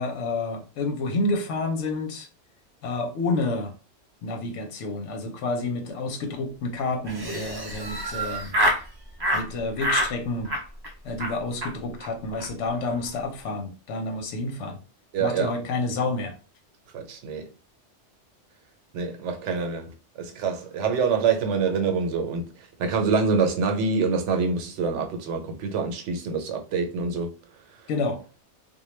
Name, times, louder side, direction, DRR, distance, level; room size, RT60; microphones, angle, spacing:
voice 1, 0.0-2.3 2.8-3.7 4.2-8.5 9.3-10.5 11.0-14.8 15.2-16.3 27.9-28.2, left 3 dB, 85° left, 1.0 m, -29 dB
Laughter, 7.0-8.8 9.2-9.5 9.8-10.1 10.4-10.9 11.2-11.3 11.6-11.7 12.0-12.1 12.3-12.5 12.7-13.1, equal, 40° right, 0.3 m, -27 dB
voice 2, 15.1-15.5 16.9-17.5 18.9-27.3, right 5 dB, 80° right, 0.9 m, -26 dB
2.2 x 2.1 x 3.1 m
omnidirectional pair, 1.2 m